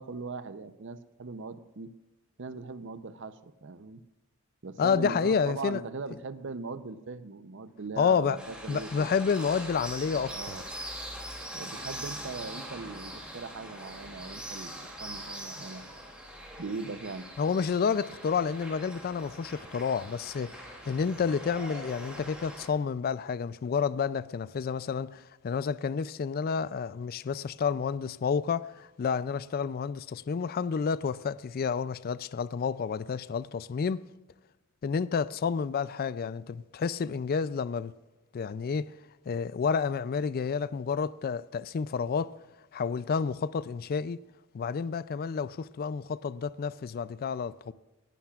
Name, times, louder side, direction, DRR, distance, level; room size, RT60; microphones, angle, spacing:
voice 1, 0.0-1.9 2.4-4.0 4.6-9.1 10.1-10.6 11.5-15.8 16.6-17.3, right 4 dB, 60° right, 0.7 m, -40 dB
voice 2, 4.8-5.8 8.0-8.4 8.7-10.6 17.4-34.0 34.8-37.9 38.3-39.0 39.3-42.4 42.7-44.2 44.5-47.7, left 6 dB, 45° left, 0.3 m, -30 dB
sound 1, 8.4-22.7, right 1 dB, 5° right, 2.6 m, -42 dB
18.5 x 11.5 x 2.4 m
head